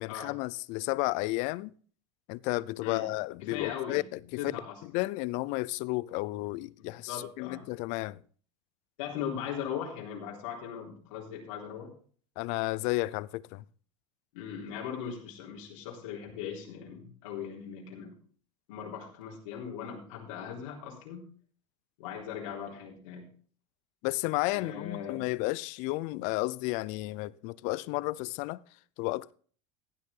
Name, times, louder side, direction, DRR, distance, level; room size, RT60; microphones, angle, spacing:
voice 1, 0.0-1.7 2.3-4.2 4.9-8.2 12.4-13.6 24.0-28.6 29.0-29.3, left 21 dB, 50° left, 0.5 m, -32 dB
voice 2, 3.4-4.0 4.4-4.8 7.1-7.6 9.0-11.9 14.3-18.1 18.7-21.3 22.0-23.3 24.5-25.2, left 8 dB, 80° left, 3.7 m, -39 dB
15.5 x 9.4 x 3.7 m
supercardioid pair, 155°, 16 cm